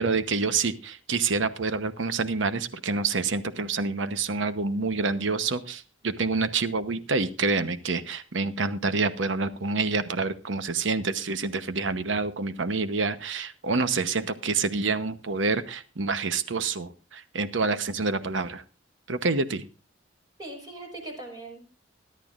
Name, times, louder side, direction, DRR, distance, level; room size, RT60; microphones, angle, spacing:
voice 1, 0.0-18.6 19.1-19.7, right 4 dB, 80° right, 11 dB, 0.9 m, -27 dB
voice 2, 20.4-21.7, right 2 dB, 20° right, 2 dB, 4.8 m, -40 dB
21.0 x 11.5 x 2.5 m, 0.34 s
head